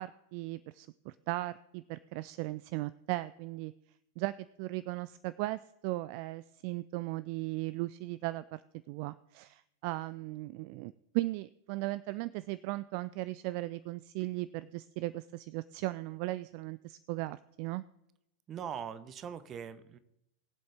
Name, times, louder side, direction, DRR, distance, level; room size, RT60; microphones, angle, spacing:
voice 1, 0.0-3.7 4.2-4.3 4.6-8.6 8.9-17.8, right 19 dB, 45° right, 17 dB, 0.3 m, -37 dB
voice 2, 18.5-20.0, right 8 dB, 30° right, 14 dB, 0.9 m, -41 dB
21.0 x 7.7 x 3.4 m, 0.83 s
figure-of-eight pair, 90°, 0 cm